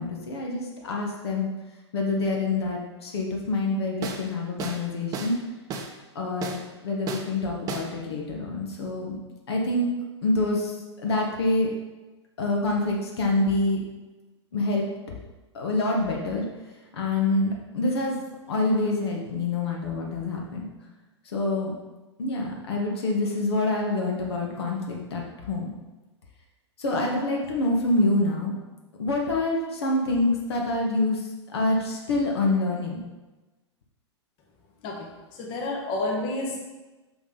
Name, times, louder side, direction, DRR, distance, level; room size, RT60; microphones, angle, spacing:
voice 1, 0.0-1.5 1.9-5.3 6.1-9.1 9.5-9.9 10.2-10.7 11.0-11.7 12.4-13.8 14.5-14.8 15.5-16.4 16.9-20.6 21.3-21.7 22.2-25.7 26.8-28.5 29.0-31.2 31.5-33.0, left 2 dB, 60° left, 0 dB, 1.3 m, -26 dB
sound 1, 4.0-4.3 4.6-4.8 5.1-5.4 5.7-5.9 6.4-6.6 7.1-7.3 7.7-7.9, right 4 dB, 25° right, 0.7 m, -33 dB
voice 2, 34.8-36.6, left 2 dB, 35° left, 0 dB, 1.3 m, -30 dB
6.1 x 5.9 x 4.0 m, 1.1 s
figure-of-eight pair, 100°, 15 cm